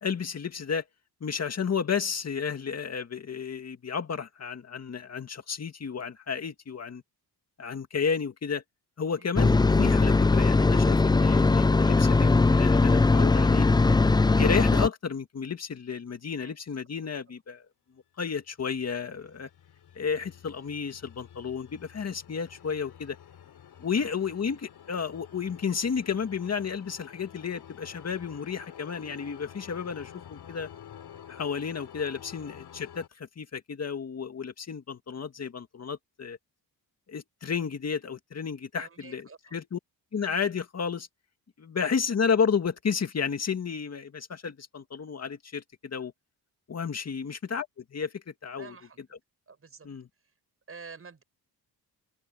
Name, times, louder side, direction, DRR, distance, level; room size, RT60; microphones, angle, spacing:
voice 1, 0.0-0.8 1.2-7.0 7.6-8.6 9.0-13.7 14.3-17.7 18.2-19.5 20.0-23.2 23.8-30.7 31.3-36.4 37.1-39.8 40.1-41.1 41.6-46.1 46.7-48.8 49.8-50.1, left 6 dB, 40° left, 2.1 m, -32 dB
sound 1, 9.3-14.9, left 3 dB, 10° left, 0.4 m, -20 dB
sound 2, 18.7-33.1, left 9 dB, 70° left, 4.0 m, -49 dB
voice 2, 38.8-39.5 48.6-49.0 49.5-49.9 50.7-51.2, right 5 dB, 35° right, 7.7 m, -48 dB
open air
wide cardioid pair, 130°, 39 cm